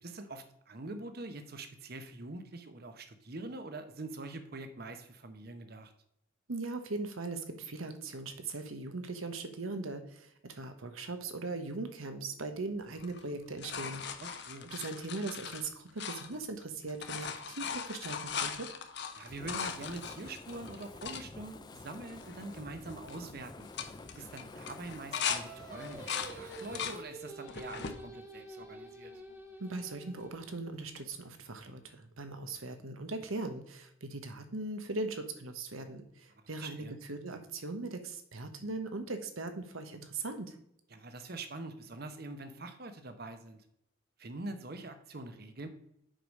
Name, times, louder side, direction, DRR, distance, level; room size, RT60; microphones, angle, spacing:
voice 1, 0.0-5.9 14.2-14.7 19.2-23.7 24.1-29.1 36.6-36.9 40.9-43.6 44.2-45.7, right 2 dB, 50° right, 8 dB, 0.9 m, -44 dB
voice 2, 6.5-14.0 14.6-18.7 29.6-40.5, right 3 dB, 90° right, 8 dB, 1.1 m, -39 dB
sound 1, 13.0-16.6 16.9-21.2 21.8-21.9 22.1-22.6 22.9-23.2 23.6-25.4 25.8-27.0 27.5-28.0 28.6-29.3 31.0-31.1, left 7 dB, 55° left, 0.8 m, -39 dB
Fire, 19.2-27.1, left 2 dB, 20° left, 0.4 m, -49 dB
Singing, 25.1-30.5, right 1 dB, 10° right, 1.3 m, -48 dB
7.7 x 4.9 x 5.3 m, 0.74 s
head